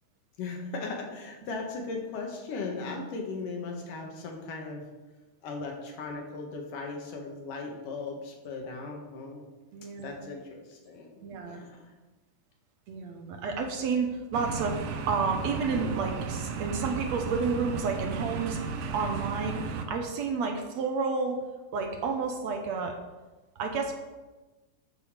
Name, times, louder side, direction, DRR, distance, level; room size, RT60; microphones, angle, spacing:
voice 1, 0.4-4.9 5.4-9.4 10.0-11.1 11.5-11.9, left 3 dB, 85° left, 1 dB, 3.3 m, -37 dB
voice 2, 9.7-10.2 11.2-11.6 12.9-21.4 21.7-23.0 23.6-23.9, right 4 dB, 65° right, 4 dB, 2.1 m, -31 dB
sound 1, 14.3-19.8, right 5 dB, 85° right, 2.4 m, -34 dB
13.0 x 7.0 x 5.0 m, 1.2 s
omnidirectional pair, 3.6 m